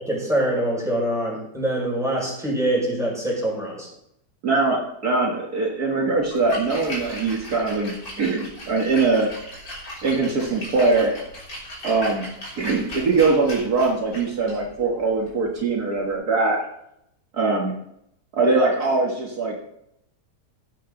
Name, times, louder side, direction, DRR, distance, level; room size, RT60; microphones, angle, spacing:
voice 1, 0.0-3.9, right 1 dB, ahead, -4 dB, 5.6 m, -24 dB
voice 2, 4.4-9.3 10.0-11.2 11.8-16.6 17.3-17.8 18.3-19.6, right 3 dB, 65° right, -1 dB, 2.1 m, -22 dB
Splash splatter, 6.2-16.1, equal, 60° left, 4.0 m, -38 dB
15.5 x 9.2 x 3.9 m, 0.77 s
omnidirectional pair, 1.8 m